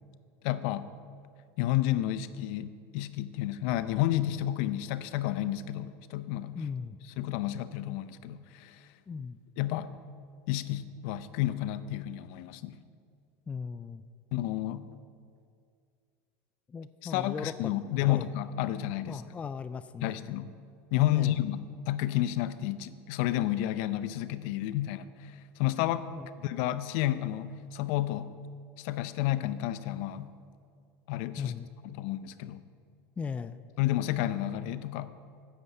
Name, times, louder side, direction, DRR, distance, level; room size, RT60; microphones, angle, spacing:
voice 1, 0.4-0.9 1.6-6.6 7.2-8.8 9.6-9.9 10.5-12.8 14.3-14.9 17.0-19.2 20.0-20.5 20.9-26.1 26.4-28.3 28.8-30.3 31.1-31.5 31.8-32.6 33.8-35.1, left 13 dB, 70° left, 14 dB, 0.6 m, -31 dB
voice 2, 6.5-7.0 9.1-9.4 13.5-14.0 16.7-17.7 18.1-18.3 19.1-20.2 21.1-21.4 26.1-26.3 31.4-31.7 33.2-33.6, left 5 dB, 20° left, 13 dB, 0.3 m, -37 dB
9.6 x 8.2 x 6.6 m, 2.3 s
supercardioid pair, 125°, 7 cm